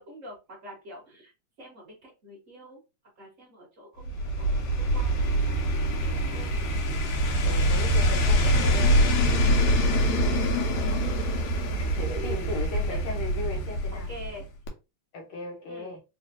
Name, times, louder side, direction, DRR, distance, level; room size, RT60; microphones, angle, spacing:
voice 1, 0.0-1.3 1.6-2.8 3.1-5.3 5.8-6.6 12.0-12.5 12.9-13.0 13.9-14.5 15.7-15.9, equal, 40° right, 1.2 m, -44 dB
sound 1, 4.0-14.4 14.7-14.8, equal, 85° left, 2.2 m, -24 dB
voice 2, 7.4-11.0 11.7-14.1 15.1-16.0, left 3 dB, 65° left, 1.4 m, -38 dB
4.7 x 2.4 x 2.8 m
omnidirectional pair, 3.3 m